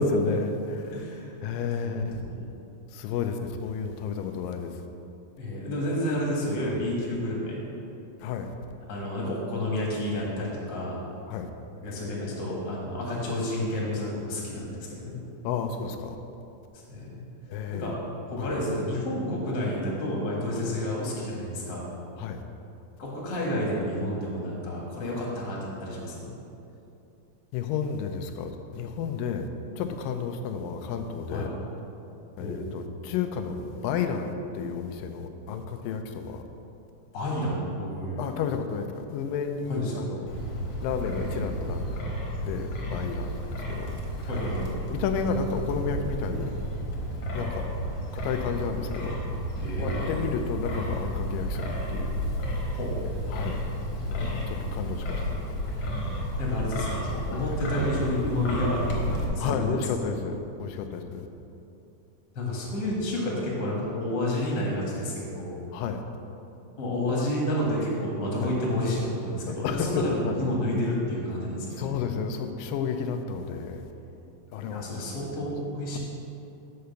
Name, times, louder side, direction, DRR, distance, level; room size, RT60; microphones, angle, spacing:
voice 1, 0.0-0.9 1.4-2.2 2.9-4.7 6.6-6.8 8.2-8.5 11.3-11.5 15.4-16.2 17.5-17.9 18.4-18.5 22.2-22.4 27.5-29.5 29.8-31.5 32.4-36.4 38.2-40.3 40.8-42.0 42.4-44.0 44.9-46.5 47.3-47.7 48.1-49.2 49.8-52.2 53.3-53.6 54.1-55.2 59.4-61.3 65.7-66.0 68.4-68.5 69.5-70.4 71.8-73.8 74.5-75.0, left 6 dB, 90° left, 6 dB, 2.3 m, -31 dB
voice 2, 0.9-1.3 1.8-2.0 2.3-2.5 5.4-7.6 8.9-11.0 11.8-15.2 16.9-17.2 17.7-18.0 18.3-21.9 23.0-26.3 31.3-31.5 32.4-32.6 37.1-38.4 39.7-40.1 44.3-44.8 49.6-50.1 52.7-53.1 56.4-59.8 62.3-65.7 66.8-71.8 74.7-76.0, left 1 dB, 40° left, -4 dB, 1.9 m, -30 dB
Wind, 40.3-59.2, equal, 60° left, 2.1 m, -32 dB
6.5 x 5.6 x 6.8 m, 2.8 s
omnidirectional pair, 3.9 m